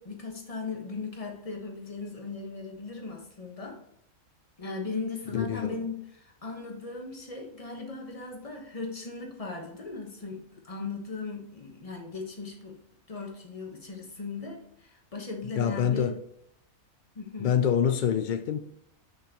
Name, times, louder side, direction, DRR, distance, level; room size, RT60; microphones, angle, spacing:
voice 1, 0.0-3.8 4.6-12.8 13.1-16.1 17.1-17.6, left 4 dB, 25° left, 1.2 m, -38 dB
voice 2, 5.3-5.9 15.5-16.2 17.4-18.6, left 8 dB, 85° left, 0.4 m, -26 dB
6.0 x 5.8 x 2.9 m
omnidirectional pair, 1.4 m